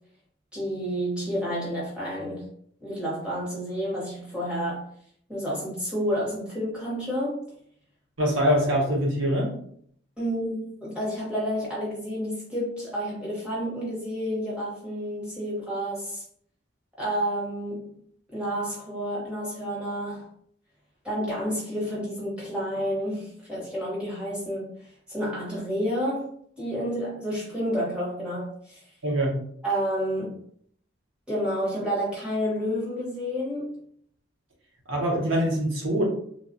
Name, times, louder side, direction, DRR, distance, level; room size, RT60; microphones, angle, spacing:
voice 1, 0.5-2.5 2.8-4.9 5.3-7.4 10.2-16.2 17.0-17.9 18.3-20.3 21.0-24.7 25.1-26.3 26.6-28.8 29.6-30.4 31.3-33.8, equal, 5° right, -7 dB, 1.1 m, -30 dB
voice 2, 8.2-9.5 29.0-29.3 34.9-36.1, equal, 85° right, -2 dB, 1.0 m, -23 dB
3.2 x 2.4 x 2.6 m, 0.63 s
head